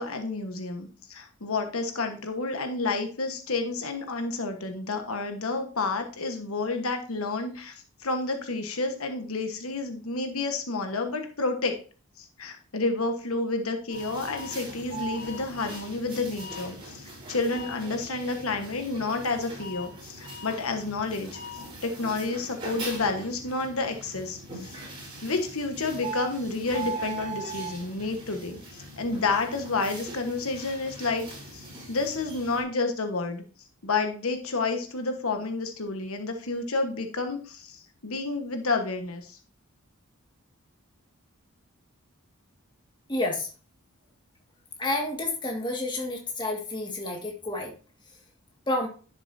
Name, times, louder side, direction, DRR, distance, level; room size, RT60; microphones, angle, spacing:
voice 1, 0.0-11.8 12.2-24.8 25.2-33.4 33.8-39.4, left 3 dB, 75° left, 5 dB, 1.2 m, -30 dB
sound 1, 13.9-32.6, right 2 dB, 25° right, 3.7 m, -40 dB
voice 2, 43.1-43.5 44.8-47.7 48.7-48.9, left 2 dB, 20° left, 1 dB, 1.8 m, -29 dB
11.0 x 6.9 x 2.7 m, 0.36 s
head